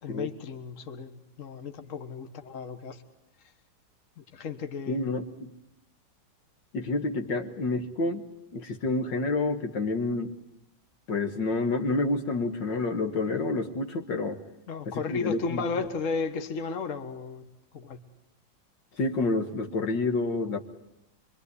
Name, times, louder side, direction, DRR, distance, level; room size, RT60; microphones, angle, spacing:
voice 1, 0.0-3.0 4.2-5.2 13.3-13.4 14.7-17.4 17.7-18.0, left 4 dB, 40° left, 8 dB, 1.8 m, -34 dB
voice 2, 4.9-5.5 6.7-8.3 8.5-10.4 11.1-14.4 14.9-15.6 19.0-20.6, left 3 dB, 65° left, 5 dB, 2.2 m, -29 dB
25.0 x 24.5 x 9.8 m, 0.84 s
omnidirectional pair, 2.2 m